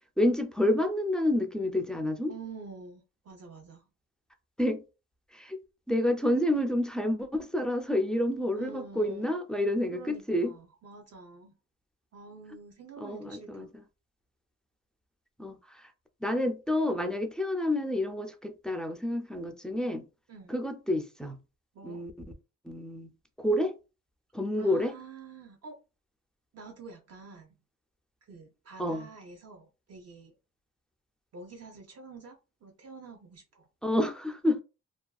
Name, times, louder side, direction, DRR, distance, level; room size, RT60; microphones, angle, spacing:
voice 1, 0.2-2.3 4.6-4.8 5.3-5.6 5.9-10.5 13.0-13.7 15.4-15.9 16.2-20.0 20.5-21.4 21.8-22.1 22.6-23.1 23.4-23.7 24.3-25.0 28.8-29.1 33.8-34.6, left 1 dB, 5° left, 0.3 m, -29 dB
voice 2, 2.3-3.9 8.6-9.3 9.9-11.5 12.1-13.7 20.3-20.6 21.7-22.0 24.6-25.8 26.5-27.5 28.2-30.3 31.3-33.7, right 4 dB, 55° right, 0.6 m, -47 dB
2.5 x 2.3 x 2.3 m
cardioid pair, 110°, 29 cm